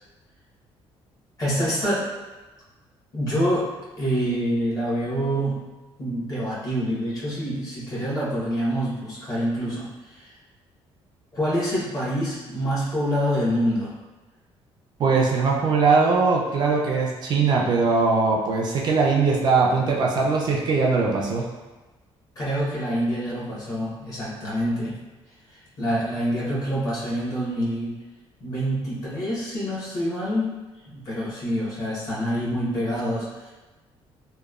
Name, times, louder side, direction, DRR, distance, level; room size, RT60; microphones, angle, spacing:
voice 1, 1.4-2.1 3.1-3.7 4.0-5.6 6.0-10.3 11.3-13.9 22.4-24.9 25.8-28.0 28.4-30.6 30.9-33.5, equal, 40° left, -8 dB, 1.0 m, -26 dB
voice 2, 15.0-21.5, right 4 dB, 45° right, -1 dB, 0.3 m, -21 dB
3.0 x 2.1 x 2.3 m, 1.2 s
cardioid pair, 155°, 10 cm